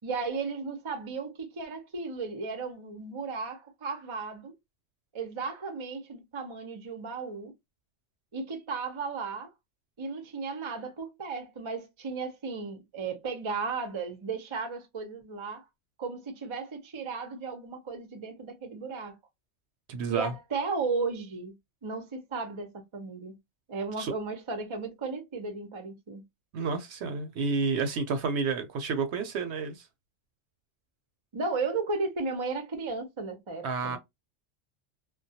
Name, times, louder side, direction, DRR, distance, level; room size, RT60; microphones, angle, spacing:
voice 1, 0.0-4.5 5.1-7.5 8.3-9.5 10.0-15.6 16.0-19.2 20.1-21.5 21.8-23.4 23.7-26.2 31.3-34.0, right 4 dB, 35° right, 0.5 m, -35 dB
voice 2, 19.9-20.3 24.0-24.1 26.5-29.9 33.6-34.0, right 4 dB, 70° right, 0.8 m, -30 dB
2.2 x 2.2 x 2.6 m
omnidirectional pair, 1.2 m